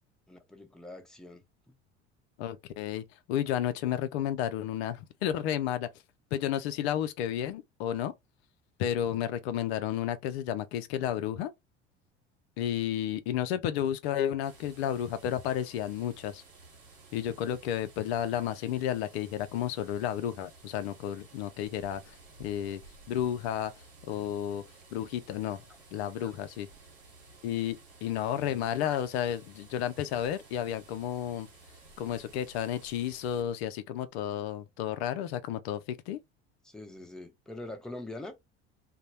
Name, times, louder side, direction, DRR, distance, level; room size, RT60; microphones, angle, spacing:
voice 1, 0.3-1.7 26.2-26.3 28.8-29.0 36.6-38.3, left 2 dB, ahead, 0.6 m, -44 dB
voice 2, 2.4-5.9 6.3-8.1 8.8-11.5 12.6-16.4 17.1-22.8 23.1-24.6 24.9-25.6 25.9-26.7 27.4-31.5 32.0-36.2, left 10 dB, 70° left, 0.5 m, -32 dB
sound 1, 14.4-33.4, right 3 dB, 80° right, 1.1 m, -55 dB
2.2 x 2.0 x 2.8 m
hypercardioid pair, 70°, 33 cm